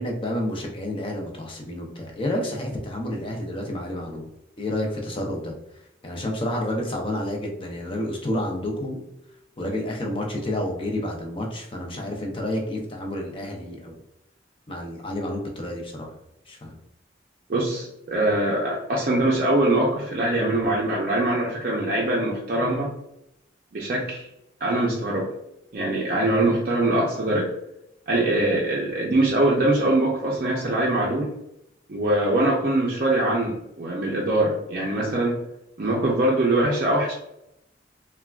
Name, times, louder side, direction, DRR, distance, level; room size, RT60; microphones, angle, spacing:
voice 1, 0.0-4.3 4.6-5.5 6.0-9.0 9.6-14.0 14.7-16.1 16.5-16.8 28.4-28.5, left 1 dB, 30° left, 1 dB, 0.5 m, -30 dB
voice 2, 17.5-22.9 23.7-24.3 24.6-25.3 25.7-27.5 28.1-31.3 31.9-35.4 35.8-37.1, right 1 dB, 50° right, -3 dB, 0.5 m, -23 dB
3.4 x 2.2 x 2.3 m, 0.82 s
head